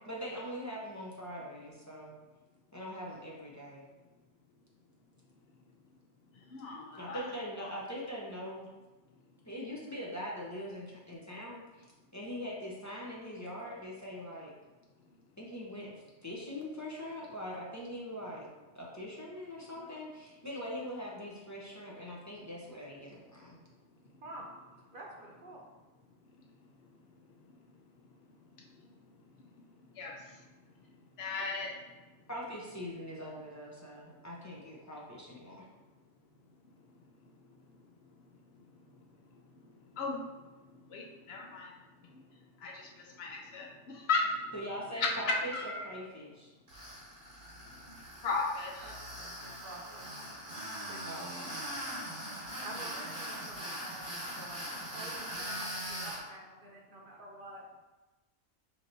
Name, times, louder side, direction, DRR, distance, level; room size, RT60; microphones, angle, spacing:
voice 1, 0.1-2.1 2.7-3.8 7.0-8.7 9.4-11.8 12.1-14.5 15.4-15.9 16.2-18.5 18.7-23.6 32.3-35.7 44.5-46.5 51.0-51.5 51.8-52.0, equal, 20° left, -5 dB, 0.6 m, -42 dB
voice 2, 6.5-7.2 7.6-7.7 30.0-30.1 31.2-31.7 40.0-40.2 40.9-41.7 42.6-42.9 43.2-43.7 44.1-44.3 45.0-45.1 45.5-45.9 48.2-48.7, left 4 dB, 65° left, 0 dB, 0.8 m, -34 dB
voice 3, 24.9-25.6 48.8-50.1 50.9-51.0 52.6-57.6, right 2 dB, 55° right, -2 dB, 0.8 m, -48 dB
Tools, 46.7-56.2, equal, 75° right, 1.9 m, -41 dB
5.5 x 3.0 x 2.6 m, 1.2 s
omnidirectional pair, 1.2 m